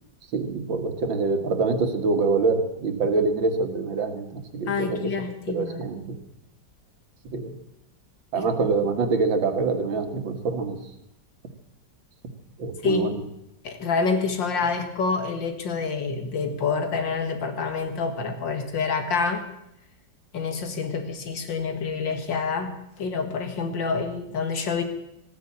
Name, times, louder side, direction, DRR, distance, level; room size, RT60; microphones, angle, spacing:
voice 1, 0.3-5.1 5.5-6.2 7.3-7.5 8.3-10.8 12.6-13.1, right 4 dB, 85° right, 8 dB, 2.3 m, -25 dB
voice 2, 4.7-5.8 8.4-8.5 12.8-13.2 13.6-19.4 20.3-24.8, left 4 dB, 75° left, 7 dB, 2.5 m, -27 dB
15.5 x 9.6 x 8.5 m, 0.84 s
omnidirectional pair, 2.0 m